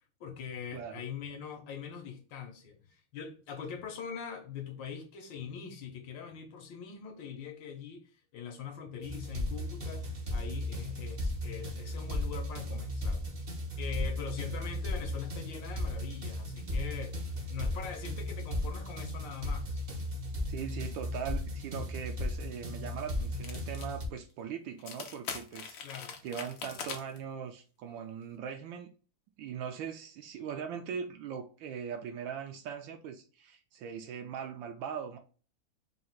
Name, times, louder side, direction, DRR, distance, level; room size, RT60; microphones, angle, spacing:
voice 1, 0.2-13.2 13.8-17.2 17.5-19.8 25.8-26.2, left 7 dB, 70° left, 1.3 m, -43 dB
voice 2, 0.7-1.0 16.6-16.7 20.5-25.8 26.2-28.9 29.4-35.2, right 7 dB, 75° right, 1.2 m, -40 dB
sound 1, 9.0-24.1, left 1 dB, 50° right, 0.7 m, -36 dB
sound 2, 23.4-23.9 24.2-24.3 24.8-27.2, left 6 dB, 90° left, 0.7 m, -41 dB
3.8 x 2.4 x 4.3 m
omnidirectional pair, 2.4 m